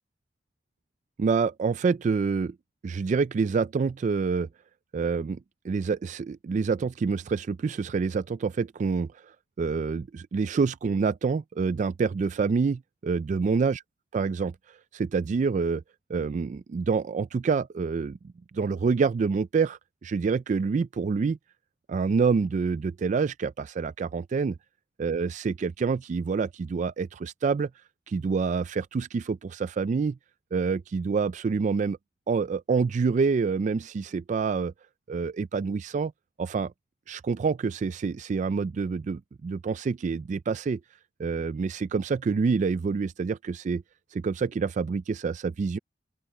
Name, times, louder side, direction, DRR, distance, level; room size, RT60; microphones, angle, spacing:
voice 1, 1.2-2.5 2.8-4.5 4.9-5.4 5.6-9.1 9.6-13.8 14.1-15.8 16.1-18.2 18.5-21.4 21.9-24.6 25.0-27.7 28.1-30.2 30.5-32.0 32.3-34.7 35.1-36.1 36.4-36.7 37.1-40.8 41.2-43.8 44.1-45.8, right 5 dB, 45° right, 0.3 m, -27 dB
open air
head